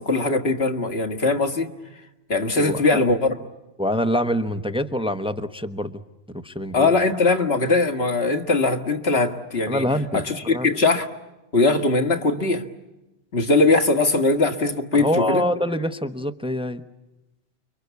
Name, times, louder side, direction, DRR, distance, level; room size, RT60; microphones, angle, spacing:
voice 1, 0.0-1.7 2.3-3.3 6.7-9.8 10.1-11.1 11.5-12.6 13.3-15.5, left 3 dB, 80° left, 6 dB, 2.1 m, -20 dB
voice 2, 2.6-3.0 3.8-6.0 6.3-6.9 9.7-10.7 14.9-16.8, left 1 dB, 5° right, 8 dB, 1.0 m, -25 dB
29.5 x 23.5 x 8.3 m, 1.0 s
omnidirectional pair, 1.0 m